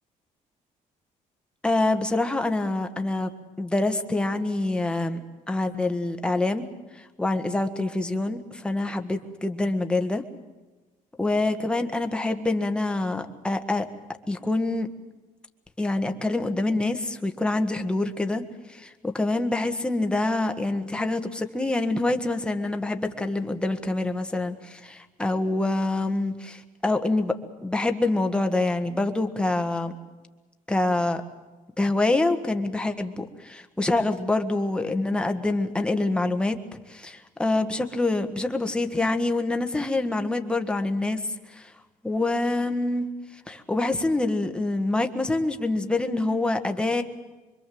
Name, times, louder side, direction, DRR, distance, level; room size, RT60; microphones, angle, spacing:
voice 1, 1.6-3.3 3.6-5.2 5.5-6.7 6.9-10.2 11.2-13.9 14.3-14.9 15.8-18.4 18.7-27.3 27.6-29.9 30.7-31.2 31.8-41.7 42.0-43.1 43.3-47.0, left 2 dB, 5° left, 5 dB, 1.5 m, -26 dB
25.5 x 23.0 x 7.8 m, 1.2 s
cardioid pair, 145°, 13 cm